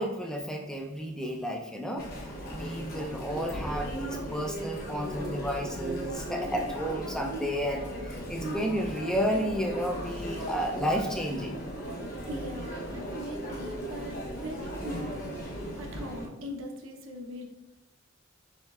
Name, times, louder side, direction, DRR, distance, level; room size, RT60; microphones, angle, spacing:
voice 1, 0.0-2.1 2.5-11.6, equal, 5° left, 2 dB, 0.3 m, -32 dB
Chatter, 2.0-16.3, right 1 dB, 50° left, 0.9 m, -37 dB
voice 2, 12.0-17.4, equal, 80° right, 2 dB, 0.7 m, -41 dB
6.3 x 3.1 x 2.4 m, 0.95 s
head